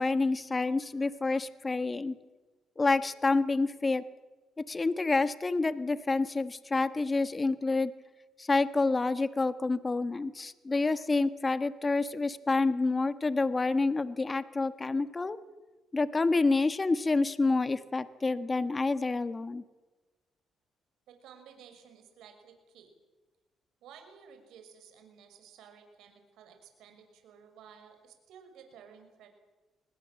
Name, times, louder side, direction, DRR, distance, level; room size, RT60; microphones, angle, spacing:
voice 1, 0.0-2.1 2.8-4.0 4.7-7.9 8.4-15.4 15.9-19.6, left 3 dB, 25° left, 12 dB, 1.4 m, -28 dB
voice 2, 21.1-22.9 23.8-29.3, right 7 dB, 85° right, 6 dB, 6.0 m, -54 dB
27.5 x 21.0 x 7.7 m, 1.2 s
cardioid pair, 90°, 0 cm